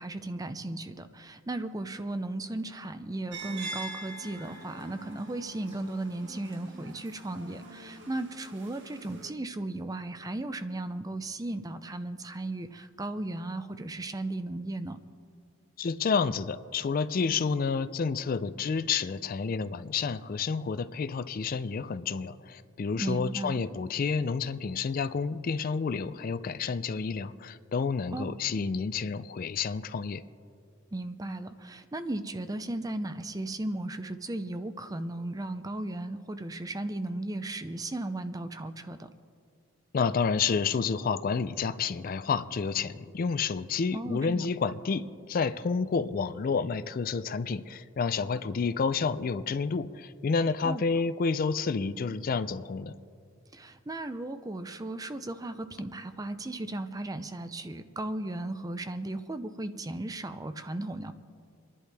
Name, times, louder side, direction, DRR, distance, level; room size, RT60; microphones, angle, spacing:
voice 1, 0.0-15.0 23.0-23.6 28.1-28.3 30.9-39.1 43.9-44.5 50.6-50.8 53.5-61.1, right 2 dB, 15° right, 10 dB, 0.5 m, -36 dB
sound 1, 3.3-9.3, right 2 dB, 60° right, 1.4 m, -44 dB
voice 2, 15.8-30.2 39.9-52.9, left 5 dB, 45° left, 13 dB, 0.4 m, -30 dB
29.0 x 11.0 x 3.4 m, 2.2 s
head